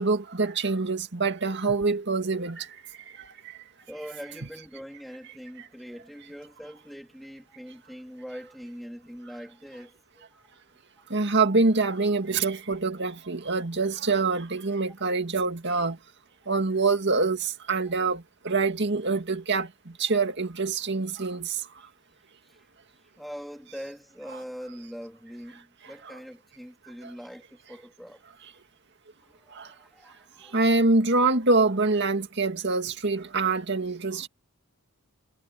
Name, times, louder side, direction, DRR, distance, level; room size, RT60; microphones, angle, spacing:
voice 1, 0.0-2.7 11.1-16.0 16.5-19.7 20.0-21.5 29.6-29.7 30.5-34.3, right 3 dB, 55° right, 2.2 m, -25 dB
voice 2, 3.9-10.5 11.1-11.2 22.4-22.7 23.0-28.6 29.2-30.7, equal, ahead, 3.7 m, -43 dB
head